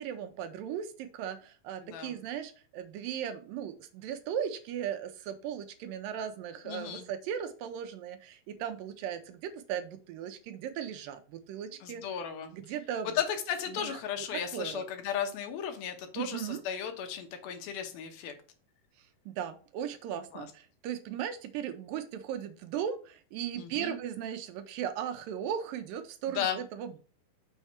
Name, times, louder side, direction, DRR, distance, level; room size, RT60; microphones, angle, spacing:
voice 1, 0.0-12.0 12.5-13.2 13.7-14.8 16.2-16.6 19.0-27.0, right 9 dB, 80° right, 8 dB, 2.2 m, -37 dB
voice 2, 6.7-7.0 11.8-12.5 13.2-18.3 20.3-20.5 23.6-23.9 26.3-26.6, left 8 dB, 80° left, 5 dB, 2.9 m, -35 dB
6.4 x 4.5 x 5.7 m, 0.39 s
omnidirectional pair, 4.3 m